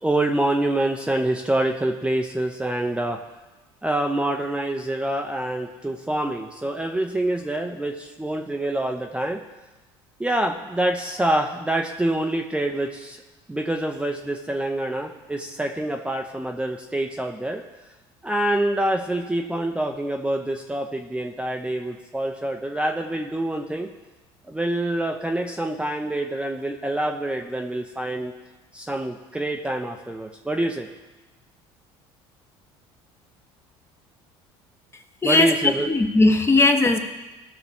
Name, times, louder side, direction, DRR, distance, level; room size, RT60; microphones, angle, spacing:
voice 1, 0.0-3.2 3.8-9.4 10.2-13.2 13.5-17.6 18.2-23.9 24.5-28.3 28.7-30.9 35.2-35.9, right 1 dB, 10° right, 2 dB, 0.7 m, -26 dB
voice 2, 35.2-37.0, left 2 dB, 20° left, 6 dB, 1.1 m, -18 dB
17.0 x 5.9 x 3.5 m, 1.1 s
supercardioid pair, 85°, 13 cm